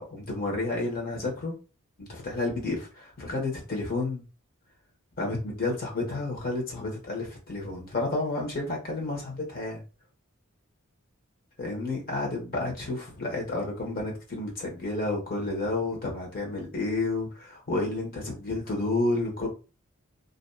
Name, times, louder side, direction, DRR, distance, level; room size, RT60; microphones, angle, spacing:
voice 1, 0.0-1.6 2.0-4.2 5.2-9.8 11.6-19.5, left 2 dB, 45° left, 0 dB, 1.1 m, -31 dB
2.8 x 2.5 x 2.3 m, 0.32 s
head